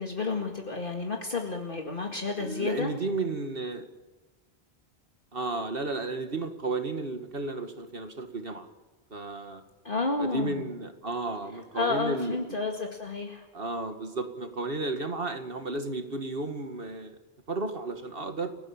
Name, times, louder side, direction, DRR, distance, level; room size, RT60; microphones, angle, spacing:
voice 1, 0.0-2.9 9.8-10.6 11.7-13.4, left 4 dB, 55° left, 2 dB, 2.2 m, -31 dB
voice 2, 2.4-3.9 5.3-8.7 9.1-9.6 10.2-12.6 13.5-17.2 17.5-18.5, right 3 dB, 60° right, 7 dB, 2.2 m, -33 dB
30.0 x 18.0 x 7.3 m, 1.2 s
omnidirectional pair, 1.1 m